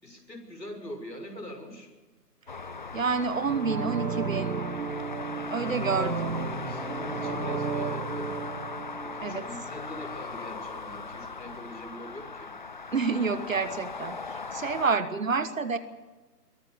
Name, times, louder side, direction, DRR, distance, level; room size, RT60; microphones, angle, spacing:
voice 1, 0.0-1.9 5.3-5.8 6.5-8.4 9.0-12.5, left 1 dB, 90° left, 4 dB, 6.3 m, -43 dB
sound 1, 2.5-14.9, left 4 dB, 30° left, 0.8 m, -38 dB
voice 2, 2.9-4.6 5.5-6.4 9.2-9.4 12.9-14.2 14.5-15.8, right 4 dB, 55° right, 12 dB, 1.4 m, -28 dB
sound 2, 3.4-10.2 10.5-10.6, right 5 dB, 70° right, 1.6 m, -34 dB
22.5 x 18.0 x 7.4 m, 1.2 s
figure-of-eight pair, 150°, 49 cm